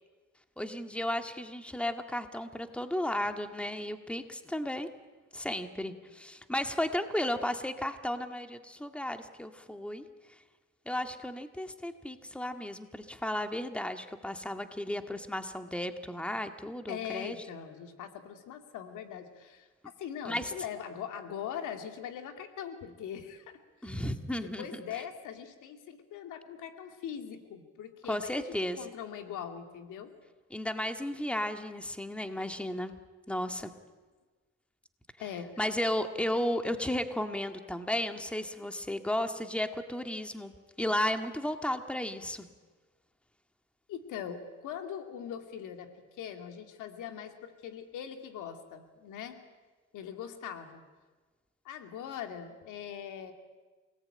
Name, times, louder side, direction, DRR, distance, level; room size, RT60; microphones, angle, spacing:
voice 1, 0.6-4.9 5.3-10.1 10.9-17.4 20.2-20.5 23.8-24.8 28.1-28.9 30.5-33.0 33.3-33.7 35.6-40.5 40.8-42.5, left 1 dB, 5° left, 6 dB, 1.9 m, -34 dB
voice 2, 16.9-19.7 20.0-23.6 23.9-24.0 24.3-28.5 28.7-30.1 35.2-35.5 43.9-49.4 49.9-50.8 51.6-53.3, left 8 dB, 90° left, 6 dB, 2.5 m, -41 dB
28.0 x 19.0 x 8.9 m, 1.3 s
cardioid pair, 90°, 30 cm